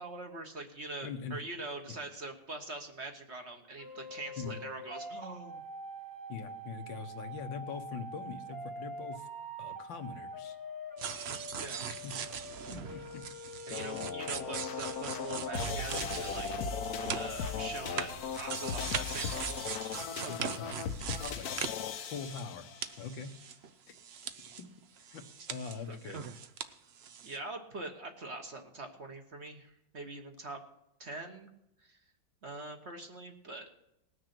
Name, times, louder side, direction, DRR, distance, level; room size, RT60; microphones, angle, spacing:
voice 1, 0.0-5.6 11.6-11.9 13.7-16.6 17.1-19.6 20.1-20.5 25.9-26.2 27.2-30.6 31.0-31.5 31.8-32.0 32.4-33.7, right 2 dB, 40° right, 4 dB, 1.4 m, -43 dB
voice 2, 1.0-1.4 4.4-4.6 6.3-9.3 9.6-10.6 12.0-12.2 12.7-13.2 17.5-17.7 18.6-19.0 20.3-20.9 21.3-21.7 22.1-22.7 23.0-23.3 24.6-24.7 25.0-26.3, left 5 dB, 85° left, 7 dB, 1.8 m, -42 dB
sound 1, 3.8-18.2, equal, 10° right, 1.3 m, -44 dB
sound 2, 11.0-22.6 22.8-24.6 25.0-26.7 27.0-27.4, right 7 dB, 70° right, 0.6 m, -41 dB
sound 3, 13.7-22.9, left 8 dB, 65° left, 1.1 m, -38 dB
19.0 x 6.6 x 6.0 m, 0.81 s
omnidirectional pair, 2.0 m